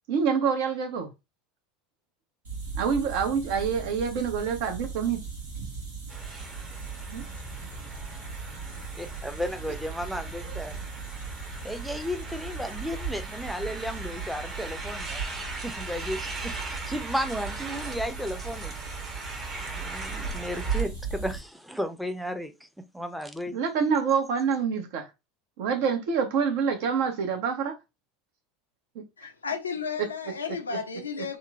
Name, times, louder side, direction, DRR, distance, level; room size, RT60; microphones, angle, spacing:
voice 1, 0.1-1.1 2.7-5.2 7.1-7.2 23.5-25.1 25.6-27.8, right 6 dB, 60° right, 0.7 m, -26 dB
sound 1, 2.4-21.4, right 5 dB, 80° right, 1.0 m, -37 dB
sound 2, 6.1-20.8, right 2 dB, 30° right, 0.8 m, -40 dB
voice 2, 9.0-10.7 11.6-15.2 15.6-18.7 19.8-22.5 22.9-23.6, equal, ahead, 0.5 m, -34 dB
voice 3, 29.2-31.4, left 5 dB, 85° left, 0.4 m, -33 dB
3.0 x 2.1 x 2.3 m
figure-of-eight pair, 75°, 0 cm